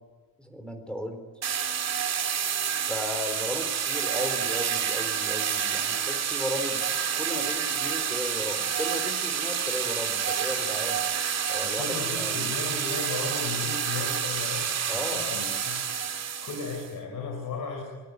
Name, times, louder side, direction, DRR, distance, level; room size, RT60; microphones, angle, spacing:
voice 1, 0.4-1.2 2.9-6.8 7.2-11.0 11.5-12.4 14.9-15.2, equal, 5° left, 6 dB, 3.8 m, -35 dB
sound 1, 1.4-16.9, right 8 dB, 50° right, 2.4 m, -29 dB
voice 2, 11.8-14.8 15.1-15.8 16.4-17.8, left 4 dB, 65° left, 3 dB, 5.7 m, -35 dB
26.0 x 20.0 x 9.6 m, 1.4 s
wide cardioid pair, 170°, 34 cm